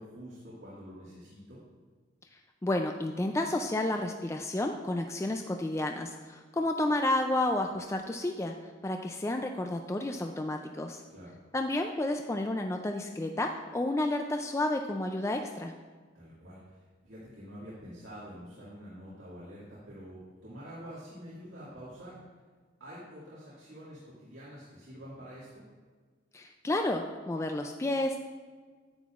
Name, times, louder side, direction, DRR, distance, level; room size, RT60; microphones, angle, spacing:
voice 1, 0.0-1.6 11.1-11.4 16.1-22.2 22.8-25.6, equal, 70° right, -9 dB, 2.0 m, -47 dB
voice 2, 2.6-8.5 8.8-11.0 11.5-15.7 26.3-28.2, left 1 dB, 15° left, 4 dB, 0.3 m, -31 dB
9.9 x 8.9 x 2.4 m, 1.5 s
head